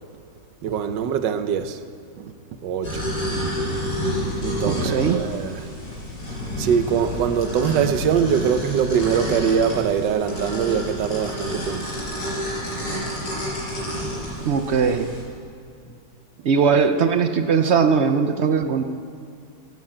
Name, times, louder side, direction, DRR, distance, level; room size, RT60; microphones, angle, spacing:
voice 1, 0.6-1.8 2.2-2.3 2.6-3.1 4.4-5.7 6.6-12.2 12.6-13.3 13.8-13.9 14.4-14.5, right 7 dB, 90° right, 1.5 m, -23 dB
sound 1, 2.8-15.2, equal, 75° left, 5.7 m, -29 dB
voice 2, 4.6-5.2 14.4-15.1 16.4-18.8, right 6 dB, 60° right, 0.7 m, -20 dB
17.0 x 9.5 x 7.8 m
omnidirectional pair, 1.9 m